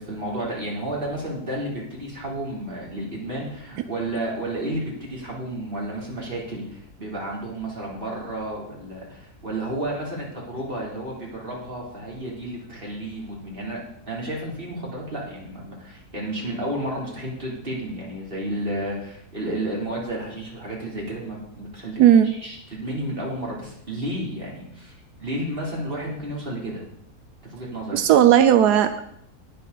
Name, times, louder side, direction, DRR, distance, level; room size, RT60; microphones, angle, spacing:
voice 1, 0.1-13.8 14.1-24.9 25.2-26.8 27.4-28.0, right 1 dB, 35° right, -4 dB, 3.9 m, -32 dB
voice 2, 22.0-22.3 27.9-29.1, right 10 dB, 90° right, 10 dB, 1.3 m, -15 dB
18.5 x 6.9 x 4.1 m, 0.71 s
omnidirectional pair, 1.7 m